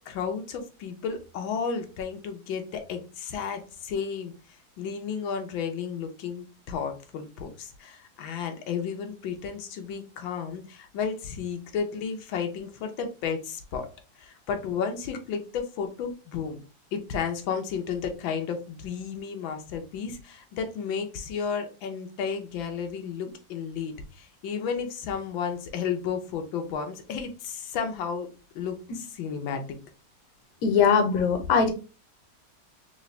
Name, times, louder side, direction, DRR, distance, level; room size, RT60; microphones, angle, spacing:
voice 1, 0.1-4.3 4.8-13.9 14.2-16.6 16.9-28.3 28.5-29.6 31.1-31.2, left 6 dB, 90° left, 5 dB, 1.6 m, -33 dB
voice 2, 30.6-31.7, left 6 dB, 65° left, 6 dB, 1.2 m, -21 dB
3.8 x 3.1 x 3.2 m, 0.34 s
omnidirectional pair, 2.0 m